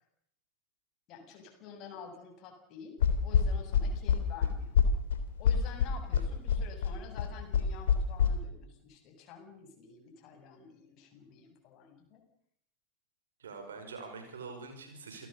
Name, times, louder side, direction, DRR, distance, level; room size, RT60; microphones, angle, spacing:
voice 1, 1.1-4.8 5.4-12.2, left 6 dB, 35° left, 3 dB, 7.4 m, -49 dB
sound 1, 3.0-8.3, left 8 dB, 60° left, 3.4 m, -26 dB
voice 2, 13.4-15.3, right 4 dB, 65° right, 5 dB, 6.1 m, -45 dB
29.0 x 18.0 x 6.9 m, 0.70 s
figure-of-eight pair, 90°, 0 cm